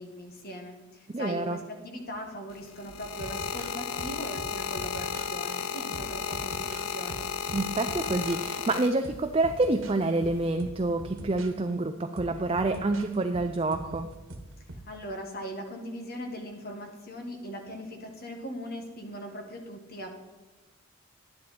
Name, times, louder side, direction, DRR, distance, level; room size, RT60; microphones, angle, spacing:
voice 1, 0.0-7.3 14.9-20.1, equal, 50° left, 3 dB, 1.8 m, -40 dB
voice 2, 1.1-1.6 7.5-14.1, right 2 dB, 30° right, 6 dB, 0.5 m, -27 dB
sound 1, 2.5-9.4 10.2-10.5, left 7 dB, 80° left, 0.5 m, -34 dB
sound 2, 2.9-5.4 5.9-8.4 8.9-11.5 12.2-14.9, right 1 dB, 75° right, 1.3 m, -44 dB
10.5 x 10.5 x 4.3 m, 1.2 s
head